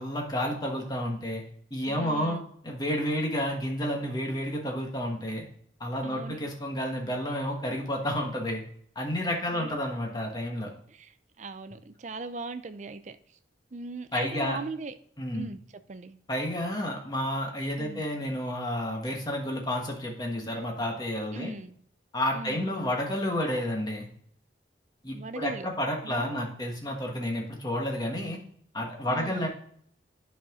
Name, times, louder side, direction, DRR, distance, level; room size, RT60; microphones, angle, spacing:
voice 1, 0.0-1.4 1.7-2.4 2.6-5.4 5.8-8.6 8.9-10.7 14.1-14.6 15.2-15.5 16.3-21.5 22.1-24.1 25.0-28.4 28.7-29.5, left 1 dB, 20° left, 1 dB, 1.4 m, -30 dB
voice 2, 1.9-2.4 6.0-6.4 9.5-9.8 10.9-13.2 13.7-15.0 15.3-16.2 17.8-18.1 21.3-21.7 22.3-22.7 25.1-25.7 26.0-26.6 29.1-29.5, right 3 dB, 40° right, 11 dB, 0.5 m, -39 dB
8.6 x 5.7 x 3.7 m, 0.63 s
head